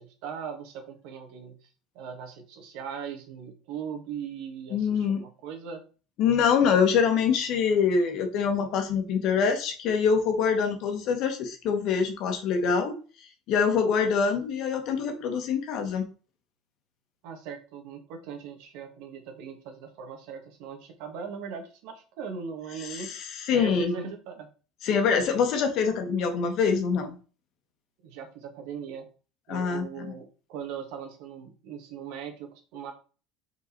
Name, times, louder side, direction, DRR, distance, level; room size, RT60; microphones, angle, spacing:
voice 1, 0.0-1.7 2.0-5.8 17.2-23.1 23.5-24.5 28.0-29.1 29.5-32.9, right 6 dB, 70° right, 5 dB, 1.8 m, -39 dB
voice 2, 4.7-5.2 6.2-13.0 13.5-16.0 22.9-23.2 23.5-24.0 24.8-27.2 29.5-30.1, left 6 dB, 55° left, 6 dB, 1.4 m, -25 dB
5.2 x 4.6 x 4.5 m, 0.36 s
cardioid pair, 140°, 0 cm